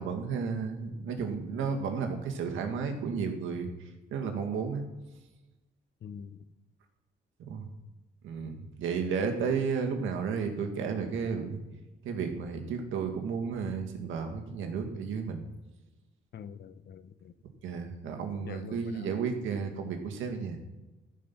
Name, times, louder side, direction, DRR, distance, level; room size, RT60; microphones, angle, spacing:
voice 1, 0.0-4.9 7.5-7.7 8.2-11.6 12.0-15.4 17.6-20.6, right 5 dB, 80° right, 1.9 m, -33 dB
voice 2, 6.0-6.4 16.3-17.3 18.4-19.2, left 7 dB, 55° left, 0.8 m, -44 dB
14.0 x 5.4 x 6.0 m
cardioid pair, 90°, 20 cm